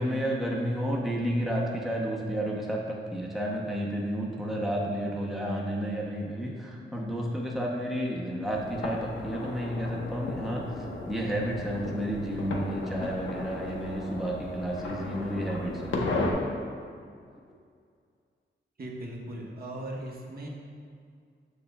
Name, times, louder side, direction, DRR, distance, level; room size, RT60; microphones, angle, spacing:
voice 1, 0.0-16.0, equal, ahead, -3 dB, 0.7 m, -31 dB
sound 1, 8.4-16.3, left 2 dB, 75° left, 0.8 m, -35 dB
voice 2, 18.8-20.5, right 1 dB, 50° right, -2 dB, 1.0 m, -38 dB
7.0 x 6.3 x 2.2 m, 2.2 s
cardioid pair, 85°, 20 cm